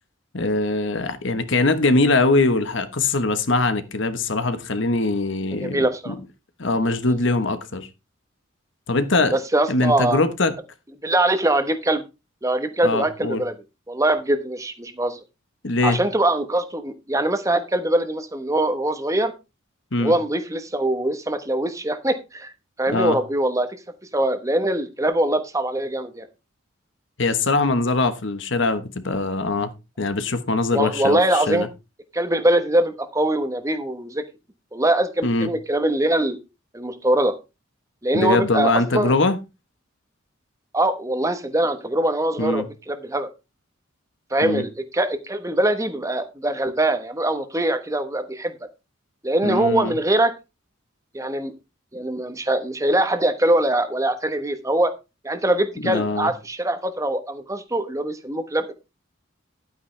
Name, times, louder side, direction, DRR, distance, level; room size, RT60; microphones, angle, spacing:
voice 1, 0.3-6.1 6.6-7.9 8.9-9.4 9.7-10.5 12.8-13.4 15.6-16.0 19.9-20.1 22.9-23.2 27.2-29.7 30.0-31.7 35.2-35.5 38.1-39.4 42.4-42.7 44.4-44.6 49.4-49.9 55.8-56.3, left 2 dB, 60° left, 1.2 m, -22 dB
voice 2, 5.5-6.1 7.1-7.2 9.3-10.2 11.0-12.0 12.4-13.5 13.9-15.2 15.8-19.3 20.0-22.5 22.8-23.7 24.1-26.3 30.7-31.7 32.1-34.2 34.7-36.4 36.7-37.3 38.0-39.2 40.7-43.3 44.3-48.5 49.2-50.3 51.1-51.5 51.9-54.9 55.2-58.7, right 1 dB, 15° right, 1.1 m, -22 dB
11.5 x 9.1 x 3.3 m
head